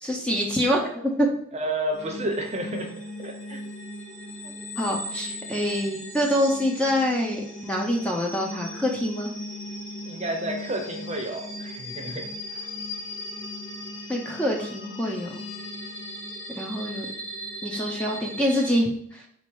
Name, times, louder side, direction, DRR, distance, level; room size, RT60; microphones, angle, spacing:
voice 1, 0.0-1.3 4.8-9.3 14.1-15.4 16.6-17.1 17.6-19.3, equal, 5° left, -1 dB, 0.6 m, -25 dB
voice 2, 1.5-3.6 10.1-12.3, right 1 dB, 30° right, 2 dB, 0.7 m, -31 dB
sound 1, 1.9-18.7, left 1 dB, 85° left, 1.4 m, -38 dB
4.1 x 2.8 x 4.6 m, 0.69 s
head